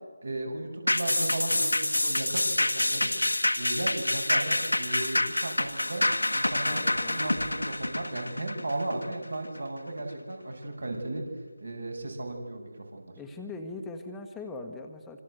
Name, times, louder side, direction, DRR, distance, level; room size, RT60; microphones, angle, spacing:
voice 1, 0.2-3.1 3.5-6.1 6.3-11.2 11.6-13.1, right 2 dB, 65° right, 3 dB, 7.9 m, -35 dB
sound 1, 0.9-9.6 10.0-10.1, left 1 dB, 75° left, 1.8 m, -27 dB
voice 2, 6.6-7.3 13.2-15.2, left 3 dB, 5° left, 2 dB, 1.5 m, -41 dB
27.5 x 25.5 x 8.1 m, 1.4 s
figure-of-eight pair, 155°, 0 cm